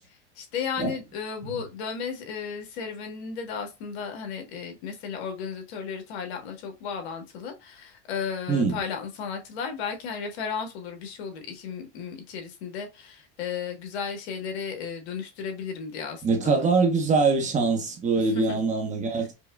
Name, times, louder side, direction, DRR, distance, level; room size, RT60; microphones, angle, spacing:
voice 1, 0.4-16.7 18.2-18.6 19.1-19.3, left 6 dB, 80° left, 1.3 m, -34 dB
voice 2, 16.2-19.3, right 4 dB, 25° right, 0.9 m, -23 dB
5.2 x 2.2 x 2.3 m
supercardioid pair, 130°, 32 cm